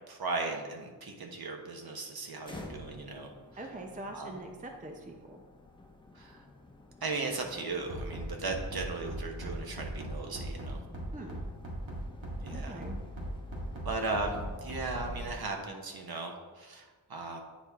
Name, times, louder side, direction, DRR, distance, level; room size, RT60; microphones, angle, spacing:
voice 1, 0.1-3.3 4.1-4.4 6.1-6.5 7.0-10.8 12.4-12.8 13.8-17.4, right 3 dB, 55° right, 2 dB, 1.1 m, -37 dB
sound 1, 2.4-15.4, left 2 dB, 10° left, 0.9 m, -49 dB
voice 2, 3.6-5.4 11.1-11.4 12.5-13.0, right 2 dB, 20° right, 3 dB, 0.6 m, -43 dB
Bass drum, 7.9-15.3, right 1 dB, 80° right, 1.9 m, -39 dB
9.5 x 4.3 x 3.6 m, 1.3 s
wide cardioid pair, 100°, 45 cm